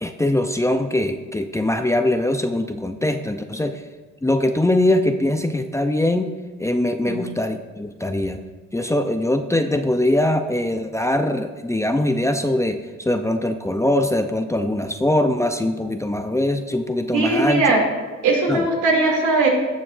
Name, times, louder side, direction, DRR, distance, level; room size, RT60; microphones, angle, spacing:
voice 1, 0.0-3.8 4.2-6.3 6.6-8.4 8.7-17.7 18.5-18.7, left 1 dB, 10° left, 6 dB, 0.5 m, -22 dB
voice 2, 17.1-17.8 18.2-19.5, right 3 dB, 80° right, -1 dB, 2.6 m, -19 dB
17.5 x 6.2 x 2.5 m, 1.4 s
cardioid pair, 90°, 30 cm